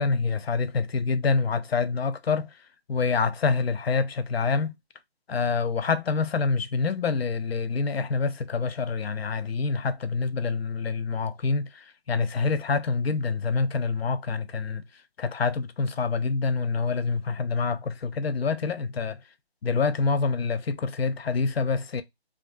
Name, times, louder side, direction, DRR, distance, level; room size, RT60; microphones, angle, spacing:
voice 1, 0.0-2.5 2.9-4.7 5.3-14.8 15.2-19.2 19.6-22.0, left 4 dB, 75° left, 0.5 m, -26 dB
2.5 x 2.4 x 2.2 m
figure-of-eight pair, 165°, 32 cm